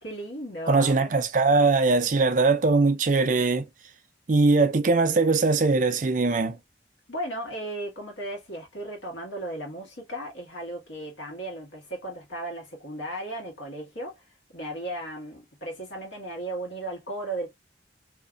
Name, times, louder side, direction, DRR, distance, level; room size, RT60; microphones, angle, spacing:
voice 1, 0.0-1.2 7.1-14.2 14.5-17.5, right 1 dB, 90° left, 1.5 m, -35 dB
voice 2, 0.7-3.6 4.3-6.6, right 3 dB, 45° right, 0.5 m, -21 dB
2.9 x 2.5 x 2.3 m
head